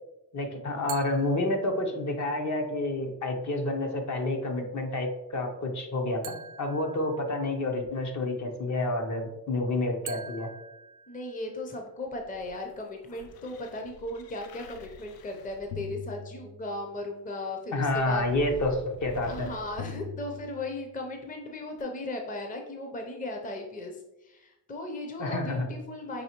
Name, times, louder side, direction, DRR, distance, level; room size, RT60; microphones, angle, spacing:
voice 1, 0.3-10.5 17.7-19.5 25.2-25.7, left 2 dB, 50° left, 3 dB, 0.8 m, -29 dB
sound 1, 0.9-2.2 6.2-7.8 10.1-11.8, right 7 dB, 60° right, 0.5 m, -45 dB
voice 2, 11.1-18.3 19.2-26.2, left 2 dB, 20° left, 2 dB, 0.6 m, -37 dB
sound 2, 12.1-17.0 17.7-21.0 21.8-21.9, left 5 dB, 75° left, 0.5 m, -45 dB
5.4 x 3.1 x 2.9 m, 0.94 s
cardioid pair, 110°, 36 cm